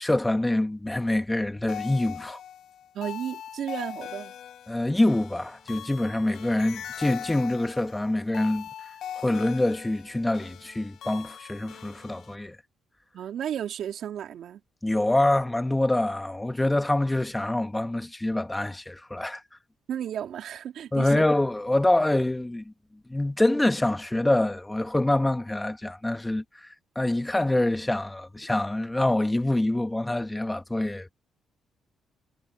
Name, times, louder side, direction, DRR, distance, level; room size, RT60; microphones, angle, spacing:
voice 1, 0.0-2.4 4.7-8.7 9.2-12.6 14.8-19.4 20.9-22.7 23.1-31.1, left 1 dB, 10° left, 1.7 m, -25 dB
sound 1, 1.7-12.3, left 10 dB, 70° left, 5.4 m, -41 dB
voice 2, 2.9-4.4 13.1-14.6 19.9-21.3, right 9 dB, 70° right, 3.4 m, -33 dB
cardioid pair, 90°, 0 cm